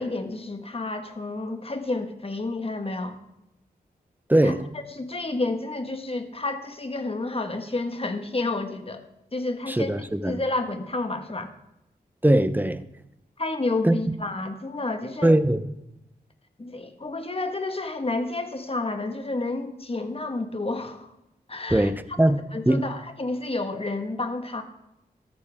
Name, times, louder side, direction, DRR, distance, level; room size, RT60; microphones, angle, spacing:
voice 1, 0.0-3.2 4.4-4.5 4.9-9.0 9.3-9.9 10.3-11.5 13.4-15.3 16.6-21.1 21.5-21.9 22.3-24.6, left 2 dB, 35° left, 1.5 m, -30 dB
voice 2, 4.3-4.6 9.7-10.4 12.2-12.8 13.8-14.0 15.2-15.6 21.7-22.4 22.7-22.8, right 1 dB, 10° right, 0.8 m, -20 dB
13.5 x 13.5 x 3.6 m
wide cardioid pair, 70°, 17 cm